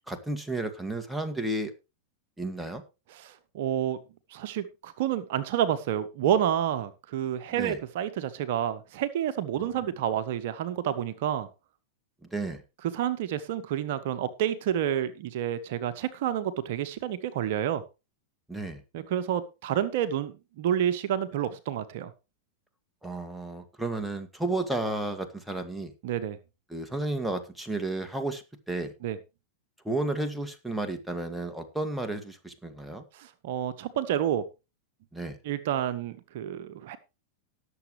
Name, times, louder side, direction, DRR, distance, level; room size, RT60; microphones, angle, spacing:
voice 1, 0.1-1.7 2.4-2.8 7.6-7.8 12.3-12.6 18.5-18.8 23.0-25.9 26.7-28.9 29.8-33.0 35.1-35.4, right 2 dB, 5° right, 6 dB, 2.1 m, -32 dB
voice 2, 3.1-4.0 4.3-11.5 12.8-17.8 18.9-22.1 26.0-26.4 29.0-29.2 33.1-34.4 35.4-37.0, right 10 dB, 60° right, 11 dB, 1.0 m, -29 dB
18.5 x 7.2 x 3.2 m, 0.28 s
hypercardioid pair, 100°, 0 cm